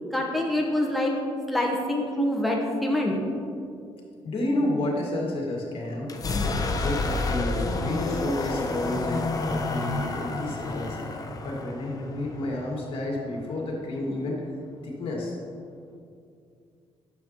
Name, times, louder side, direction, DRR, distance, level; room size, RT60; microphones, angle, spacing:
voice 1, 0.1-1.1 1.5-3.1, left 1 dB, ahead, -1 dB, 0.9 m, -25 dB
voice 2, 4.2-6.1 6.8-11.0 11.4-14.4 14.8-15.4, left 1 dB, 60° left, -2 dB, 1.8 m, -30 dB
sound 1, 6.0-13.8, left 3 dB, 35° left, 0.7 m, -30 dB
9.1 x 6.8 x 2.9 m, 2.4 s
cardioid pair, 95°, 11 cm